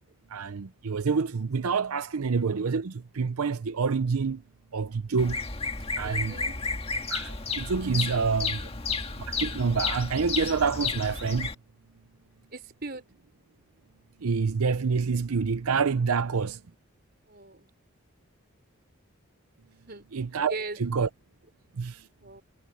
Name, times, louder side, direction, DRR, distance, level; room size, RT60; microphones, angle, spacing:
voice 1, 0.3-4.4 4.7-5.4 6.0-6.3 7.1-8.6 9.3-11.5 14.2-16.6 20.1-20.5 20.8-21.1 21.8-22.0, right 5 dB, 90° right, 0.6 m, -27 dB
Bird vocalization bird call bird song, 5.2-11.5, left 4 dB, 25° left, 1.7 m, -32 dB
voice 2, 6.0-6.6 12.5-13.1 17.2-17.7 19.9-20.1 20.5-20.8 22.2-22.4, right 3 dB, 45° right, 4.7 m, -39 dB
head